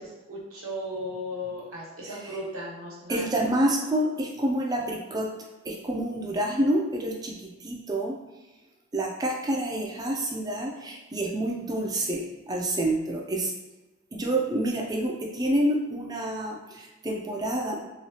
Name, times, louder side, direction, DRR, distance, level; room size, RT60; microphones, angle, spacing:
voice 1, 0.0-3.3, equal, 85° right, -6 dB, 1.0 m, -36 dB
voice 2, 3.1-5.3 5.7-8.2 8.9-13.5 14.1-17.8, right 1 dB, 20° right, 1 dB, 0.3 m, -28 dB
3.0 x 2.3 x 2.7 m, 1.1 s
head